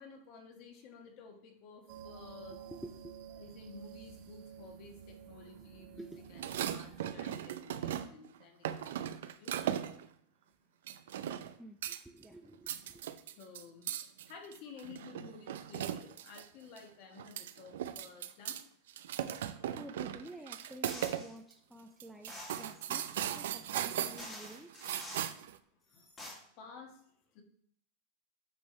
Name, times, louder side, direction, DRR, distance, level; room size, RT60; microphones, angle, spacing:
voice 1, 0.0-2.6 3.3-9.5 13.4-13.9 14.2-18.6 25.9-26.1 26.4-27.0 27.3-27.4, left 5 dB, 35° left, 3 dB, 1.3 m, -53 dB
sound 1, 1.9-7.0, right 8 dB, 55° right, 1.6 m, -51 dB
voice 2, 2.5-3.3 5.6-6.2 11.6-13.5 19.8-24.7, right 1 dB, 5° right, 3 dB, 0.4 m, -51 dB
sound 2, 6.3-8.3 8.6-10.1 10.9-11.5 11.8-12.2 12.5-16.4 16.8-16.9 17.2-18.6 18.9-21.2 21.5-21.6 22.0-25.6, right 10 dB, 75° right, 0.5 m, -38 dB
sound 3, 20.9-21.3 22.3-22.7 23.7-23.8 24.2-25.3 25.9-26.3, left 1 dB, 15° left, 1.6 m, -47 dB
8.7 x 6.2 x 3.2 m, 0.66 s
supercardioid pair, 175°, 0 cm